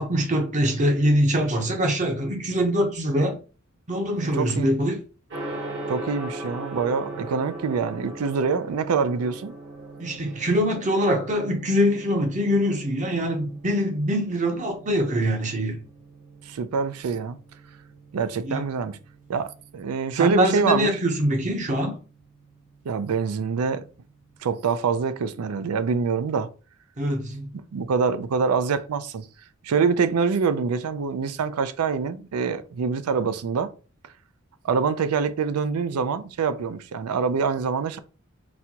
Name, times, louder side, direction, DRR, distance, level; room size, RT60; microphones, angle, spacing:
voice 1, 0.0-3.4 3.9-5.0 10.0-15.8 18.4-18.6 20.1-22.0 27.0-27.5, equal, 35° right, 0.7 m, -23 dB
voice 2, 4.2-4.7 5.9-9.5 16.5-17.4 18.1-19.0 19.3-21.0 22.8-23.8 24.4-26.5 27.7-29.3 29.6-33.7 34.6-38.0, right 5 dB, 85° right, 0.4 m, -25 dB
Gong, 5.3-24.3, right 2 dB, 55° right, 1.2 m, -41 dB
4.1 x 2.3 x 2.8 m
head